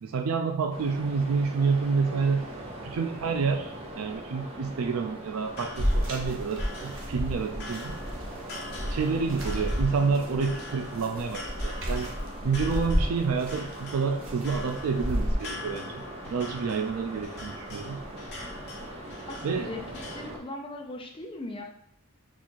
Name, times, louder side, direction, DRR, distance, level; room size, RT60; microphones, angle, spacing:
voice 1, 0.0-2.5 2.8-8.0 8.9-12.1 12.4-18.0 19.4-19.7, right 5 dB, 90° right, 5 dB, 0.4 m, -29 dB
sound 1, 0.7-20.4, right 1 dB, 30° right, 0.7 m, -41 dB
sound 2, 5.4-20.2, left 2 dB, 55° left, 1.0 m, -44 dB
sound 3, 5.7-15.3, equal, 70° right, 0.9 m, -32 dB
voice 2, 18.9-21.6, left 2 dB, 25° left, 2 dB, 0.6 m, -39 dB
4.1 x 2.4 x 4.4 m, 0.68 s
head